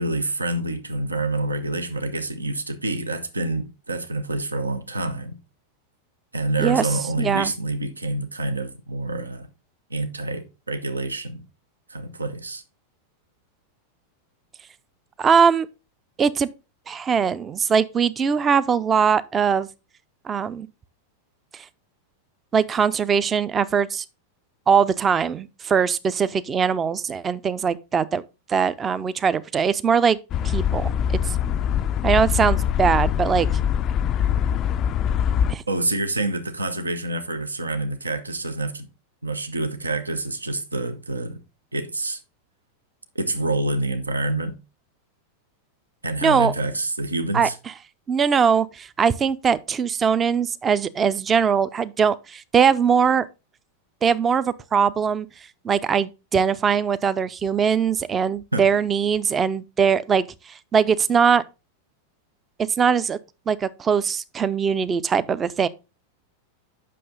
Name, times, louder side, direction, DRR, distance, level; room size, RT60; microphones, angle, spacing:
voice 1, 0.0-5.4 6.3-9.5 9.9-11.4 11.9-12.6 35.7-38.9 39.2-41.4 41.7-42.2 43.1-44.5 46.0-47.6 58.5-58.7, right 2 dB, 80° right, 0.8 m, -27 dB
voice 2, 7.2-7.5 15.2-15.7 16.2-16.5 16.9-19.7 20.3-20.7 21.5-21.6 22.5-24.0 24.7-28.2 28.5-30.2 30.4-30.9 32.0-33.5 35.5-35.6 46.2-46.5 47.3-47.5 48.1-53.3 54.0-55.3 55.6-61.4 62.8-63.2 63.5-65.7, right 6 dB, 20° right, 0.5 m, -21 dB
sound 1, 30.3-35.5, left 9 dB, 30° left, 0.3 m, -23 dB
7.7 x 6.1 x 3.7 m
figure-of-eight pair, 90°, 0 cm